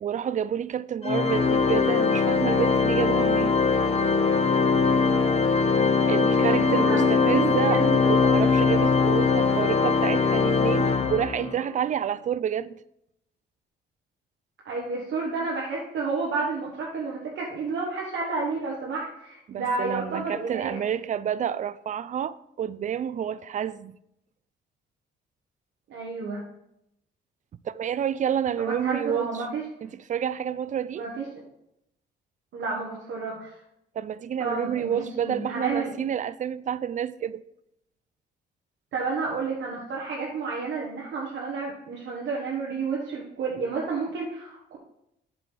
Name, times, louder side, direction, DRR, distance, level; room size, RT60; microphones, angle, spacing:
voice 1, 0.0-3.5 6.1-12.8 19.5-24.0 27.6-29.3 29.8-31.0 34.0-37.4, right 9 dB, 40° right, 0.4 m, -29 dB
Organ, 1.0-11.7, left 4 dB, 30° left, 0.8 m, -21 dB
voice 2, 6.4-8.0 14.6-20.8 25.9-26.4 28.6-29.6 31.0-31.2 32.5-33.5 34.4-35.9 38.9-44.8, right 4 dB, 70° right, 1.3 m, -31 dB
7.9 x 6.1 x 3.3 m
cardioid pair, 90°, 20 cm